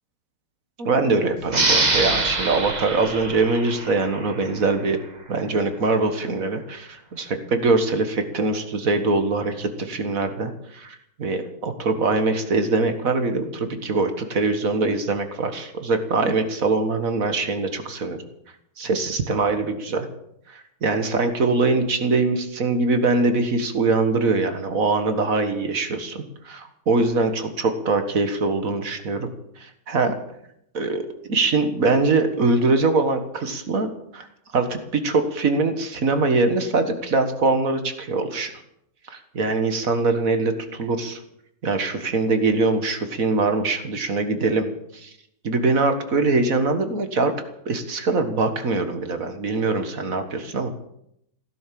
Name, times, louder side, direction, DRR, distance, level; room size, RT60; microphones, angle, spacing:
voice 1, 0.8-5.0 5.3-18.2 18.8-20.1 20.5-29.3 29.6-30.2 30.7-34.3 34.5-38.5 39.1-41.2 41.6-44.7 44.9-45.1 45.4-47.4 47.7-50.8, right 3 dB, 50° right, 8 dB, 2.0 m, -23 dB
sound 1, 1.5-4.7, right 3 dB, 25° right, 1.7 m, -24 dB
16.5 x 11.0 x 7.6 m, 0.76 s
omnidirectional pair, 1.9 m